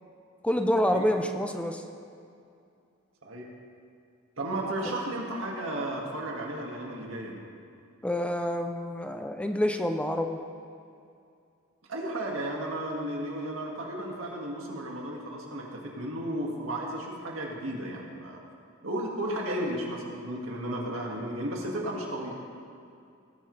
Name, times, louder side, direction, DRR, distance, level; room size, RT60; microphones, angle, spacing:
voice 1, 0.4-1.8 4.9-5.0 8.0-10.4, left 1 dB, 5° left, 5 dB, 0.5 m, -27 dB
voice 2, 4.4-7.4 11.9-18.4 18.8-22.4, right 1 dB, 85° right, -1 dB, 2.0 m, -34 dB
18.0 x 9.3 x 3.3 m, 2.4 s
head